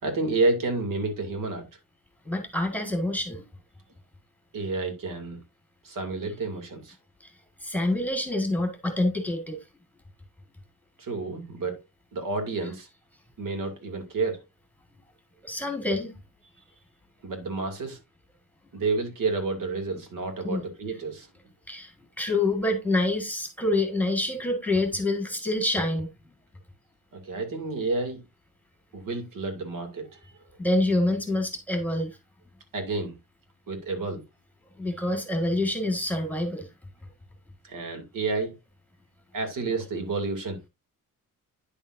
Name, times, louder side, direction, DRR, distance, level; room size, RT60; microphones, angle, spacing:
voice 1, 0.0-1.7 4.5-5.4 5.8-7.0 11.0-11.8 12.1-12.9 13.4-14.4 17.2-18.0 18.7-21.3 27.1-28.2 28.9-30.3 32.7-33.2 33.7-34.2 37.6-38.5 39.3-40.6, right 3 dB, 70° right, 2.8 m, -30 dB
voice 2, 2.2-3.4 7.2-7.3 7.6-9.6 15.4-16.1 20.4-20.6 21.7-26.1 30.6-32.2 34.8-36.7, left 2 dB, 5° left, 1.7 m, -27 dB
10.0 x 7.3 x 2.7 m
wide cardioid pair, 180°, 34 cm